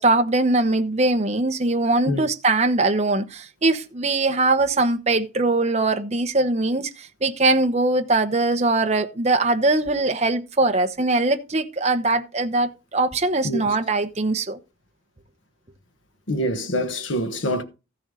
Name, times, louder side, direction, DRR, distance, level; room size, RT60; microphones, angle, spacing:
voice 1, 0.0-14.6, right 2 dB, 30° right, 1.0 m, -21 dB
voice 2, 13.4-13.8 16.3-17.6, equal, 60° left, 1.2 m, -25 dB
14.5 x 6.9 x 3.8 m
head